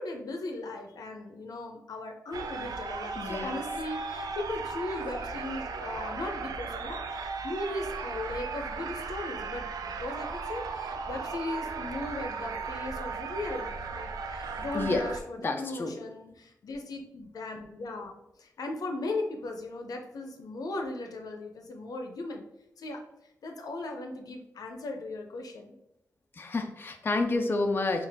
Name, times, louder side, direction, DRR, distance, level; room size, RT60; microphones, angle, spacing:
voice 1, 0.0-22.4 22.8-23.0 23.4-25.7, left 2 dB, 85° left, 3 dB, 0.6 m, -37 dB
sound 1, 2.3-15.2, right 4 dB, 90° right, 0.4 m, -36 dB
voice 2, 3.2-3.6 14.7-15.0 15.4-16.0 26.4-28.1, left 3 dB, 35° left, 4 dB, 0.4 m, -29 dB
3.9 x 2.4 x 3.4 m, 0.81 s
wide cardioid pair, 95°, 6 cm